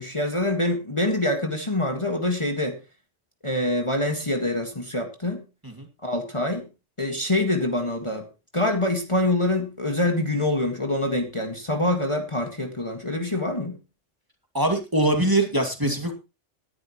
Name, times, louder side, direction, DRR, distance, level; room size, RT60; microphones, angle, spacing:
voice 1, 0.0-2.8 3.4-5.4 6.0-6.7 7.0-8.3 8.5-13.8, left 1 dB, 25° left, 3 dB, 1.8 m, -25 dB
voice 2, 14.5-16.1, right 1 dB, 15° right, 3 dB, 2.2 m, -23 dB
18.0 x 11.0 x 3.1 m, 0.29 s
omnidirectional pair, 1.3 m